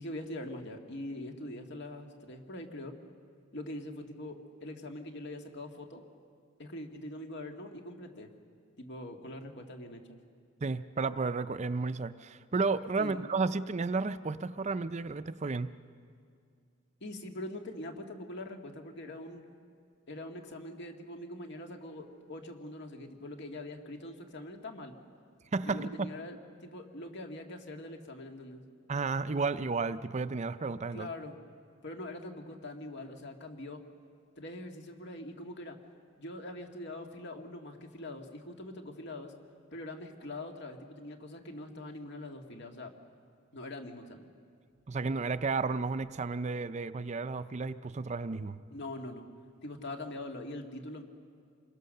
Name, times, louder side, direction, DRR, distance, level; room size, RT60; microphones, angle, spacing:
voice 1, 0.0-2.9 3.5-6.0 6.6-8.3 8.8-10.2 13.0-13.2 17.0-19.4 20.1-24.9 25.6-28.6 30.9-31.4 31.8-33.8 34.4-35.8 36.2-39.3 39.7-42.9 43.5-44.3 48.7-49.2 49.6-51.0, left 1 dB, 55° left, 4 dB, 2.1 m, -43 dB
voice 2, 10.6-15.7 25.5-26.2 28.9-31.1 44.9-48.6, right 4 dB, 35° right, 12 dB, 0.5 m, -32 dB
27.5 x 22.0 x 6.6 m, 2.3 s
head